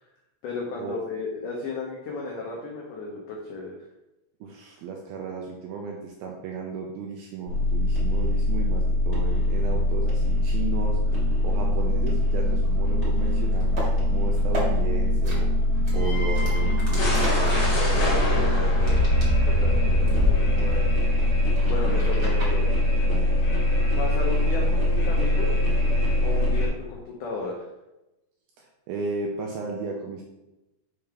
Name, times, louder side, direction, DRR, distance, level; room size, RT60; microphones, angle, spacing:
voice 1, 0.4-3.8 17.8-19.0 19.4-20.9 21.3-22.7 24.0-25.6 26.2-27.6, left 3 dB, 85° left, -2 dB, 1.8 m, -34 dB
voice 2, 4.4-15.7 15.9-17.1 21.9-22.3 23.1-23.3 28.6-30.2, right 4 dB, 80° right, 0 dB, 2.1 m, -34 dB
sound 1, 7.5-26.7, left 1 dB, 40° left, 1.5 m, -22 dB
sound 2, 13.6-13.9 14.3-14.7 15.2-15.4 15.8-19.7 20.1-20.3 20.7-22.5, left 1 dB, 35° right, 1.8 m, -33 dB
6.8 x 5.1 x 3.4 m, 0.96 s
omnidirectional pair, 4.9 m